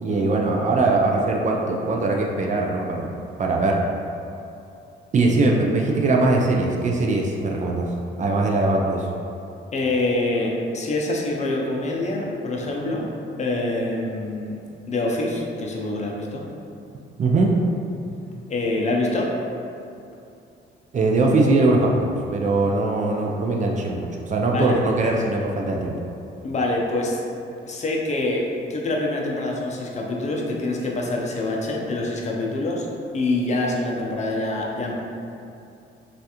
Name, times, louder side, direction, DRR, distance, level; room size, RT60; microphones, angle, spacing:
voice 1, 0.0-3.1 3.4-3.8 5.1-7.8 8.2-9.1 17.2-17.5 20.9-25.9, right 2 dB, 40° right, 0 dB, 0.4 m, -21 dB
voice 2, 9.7-13.1 13.4-14.6 14.9-16.5 18.5-19.3 24.5-24.8 26.4-27.2 27.6-32.9 33.1-35.0, left 2 dB, 35° left, -2 dB, 0.5 m, -25 dB
3.1 x 2.4 x 2.8 m, 2.6 s
cardioid pair, 90°, 20 cm